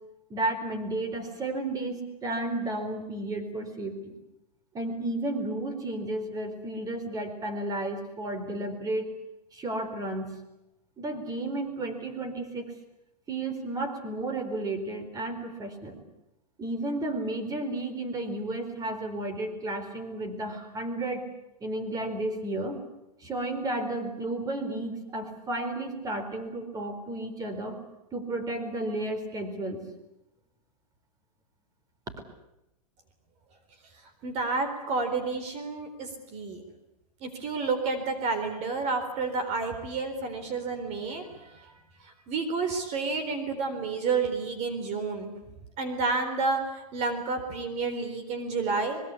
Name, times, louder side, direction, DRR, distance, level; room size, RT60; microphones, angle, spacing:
voice 1, 0.3-4.1 4.7-9.1 9.5-10.4 11.0-12.7 13.3-16.0 16.6-21.3 21.6-22.8 23.2-27.8 28.1-29.8, right 2 dB, 20° right, 9 dB, 4.4 m, -32 dB
voice 2, 34.2-36.6 37.2-41.7 42.0-45.3 45.8-49.0, right 4 dB, 35° right, 8 dB, 4.1 m, -30 dB
25.5 x 22.0 x 8.5 m, 0.91 s
hypercardioid pair, 135°, 20 cm